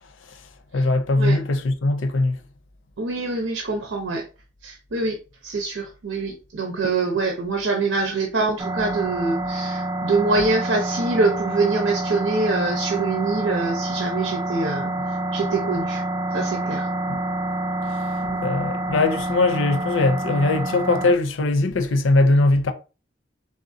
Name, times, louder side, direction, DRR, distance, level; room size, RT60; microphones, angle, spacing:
voice 1, 0.7-2.4 17.1-17.2 18.4-22.7, left 2 dB, 80° left, 0.6 m, -20 dB
voice 2, 3.0-4.2 4.6-16.0 16.3-16.9 18.2-18.4, right 3 dB, 80° right, 0.8 m, -25 dB
sound 1, 8.6-21.1, right 2 dB, 20° right, 0.4 m, -27 dB
3.9 x 3.6 x 2.7 m
head